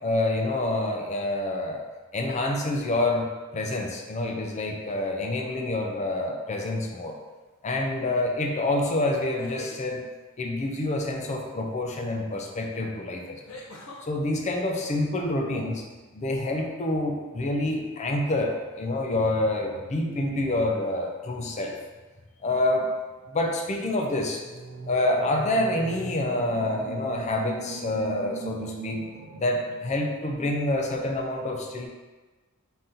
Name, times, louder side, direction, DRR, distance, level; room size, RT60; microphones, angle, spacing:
voice 1, 0.0-1.8 2.1-3.3 3.5-7.1 7.6-10.0 10.4-13.6 14.0-15.8 16.1-21.8 22.4-22.9 23.3-24.4 24.9-29.0 29.4-31.9, left 1 dB, 30° left, 2 dB, 0.5 m, -27 dB
sound 1, 6.6-7.0 9.2-9.8 12.1-12.2 13.5-14.0, left 1 dB, 65° left, 0.7 m, -43 dB
sound 2, 24.4-30.5, right 4 dB, 50° right, 0.5 m, -40 dB
3.9 x 2.8 x 3.8 m, 1.3 s
head